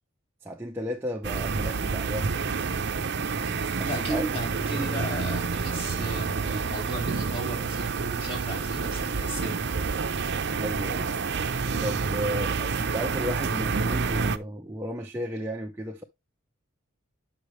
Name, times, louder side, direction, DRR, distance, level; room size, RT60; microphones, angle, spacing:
voice 1, 0.4-2.7 3.8-4.3 10.6-11.2 11.8-16.0, equal, 10° right, 0.8 m, -34 dB
sound 1, 1.2-14.4, right 4 dB, 55° right, 0.7 m, -28 dB
voice 2, 3.8-9.6, right 2 dB, 25° left, 4.3 m, -34 dB
9.3 x 6.3 x 3.2 m
head